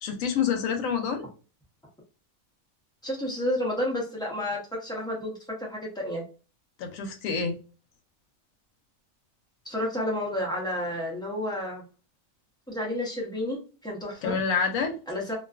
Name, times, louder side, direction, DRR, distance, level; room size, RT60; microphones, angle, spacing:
voice 1, 0.0-1.2 6.8-7.6 14.2-15.0, left 6 dB, 90° left, 6 dB, 1.0 m, -27 dB
voice 2, 3.0-5.3 5.6-6.2 9.6-11.8 12.7-14.4 15.1-15.3, left 1 dB, 5° left, -3 dB, 0.3 m, -31 dB
2.5 x 2.3 x 2.3 m, 0.36 s
omnidirectional pair, 1.4 m